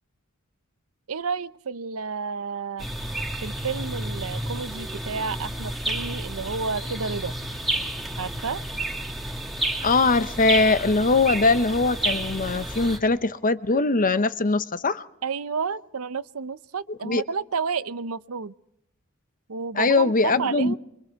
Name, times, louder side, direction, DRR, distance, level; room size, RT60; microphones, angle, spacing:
voice 1, 1.1-2.9 3.4-7.3 8.2-8.6 15.2-18.5 19.5-20.8, right 5 dB, 85° right, 0.7 m, -30 dB
sound 1, 2.8-13.0, right 1 dB, ahead, 2.9 m, -31 dB
voice 2, 9.8-15.0 16.9-17.2 19.7-20.8, left 3 dB, 40° left, 0.9 m, -21 dB
25.5 x 24.0 x 4.7 m
head